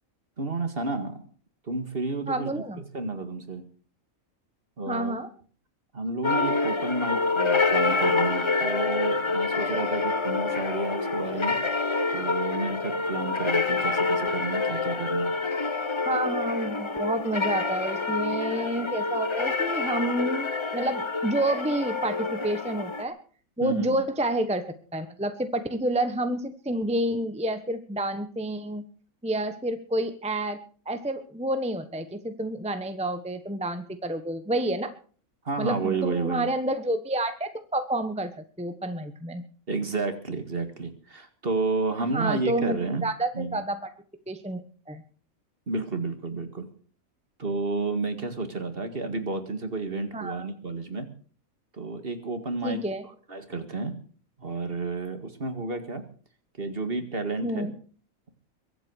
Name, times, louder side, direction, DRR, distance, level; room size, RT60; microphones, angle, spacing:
voice 1, 0.4-1.2 1.6-2.6 2.9-3.6 4.8-5.2 5.9-11.6 12.1-15.3 23.6-24.0 35.4-36.5 39.7-43.0 43.3-43.6 45.7-46.7 47.4-51.1 51.7-52.8 53.3-53.9 54.4-56.0 56.6-57.7, right 3 dB, 40° right, 8 dB, 2.2 m, -31 dB
voice 2, 2.3-2.8 4.9-5.3 16.1-23.2 23.6-24.7 24.9-28.8 29.2-30.6 30.9-34.9 35.6-39.4 42.0-43.9 44.3-45.0 50.1-50.5 52.6-53.0 57.4-57.7, right 1 dB, 5° right, 9 dB, 1.1 m, -29 dB
sound 1, 6.2-23.0, left 3 dB, 25° left, 0.8 m, -27 dB
23.0 x 8.4 x 6.4 m, 0.43 s
omnidirectional pair, 1.5 m